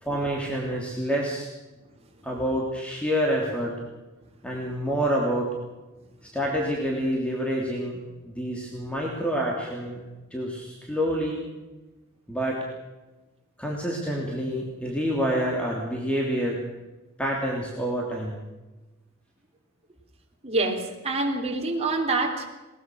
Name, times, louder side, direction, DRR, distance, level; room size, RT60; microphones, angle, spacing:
voice 1, 0.0-1.5 2.2-3.7 4.4-5.5 6.3-10.0 10.3-11.4 12.3-12.6 13.6-16.6 17.2-18.4, equal, 5° left, -2 dB, 3.1 m, -27 dB
voice 2, 20.4-22.5, right 3 dB, 30° right, 1 dB, 3.5 m, -26 dB
21.0 x 20.0 x 6.4 m, 1.1 s
head